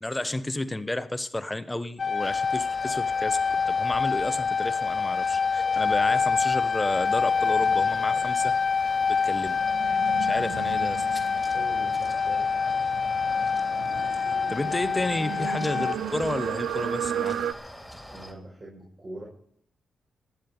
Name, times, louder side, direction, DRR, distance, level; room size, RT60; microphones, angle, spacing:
voice 1, 0.0-8.5 9.1-9.6 10.0-11.0 14.5-17.4, left 1 dB, 15° left, 12 dB, 1.1 m, -31 dB
sound 1, 2.0-15.9, left 5 dB, 50° left, 0.5 m, -26 dB
sound 2, 2.2-18.3, equal, ahead, 3.2 m, -44 dB
sound 3, 7.1-17.5, right 9 dB, 85° right, 0.7 m, -36 dB
voice 2, 10.4-10.8 11.4-12.5 18.1-19.3, right 1 dB, 40° right, -3 dB, 5.7 m, -43 dB
19.5 x 7.6 x 7.1 m, 0.66 s
supercardioid pair, 50°, 0 cm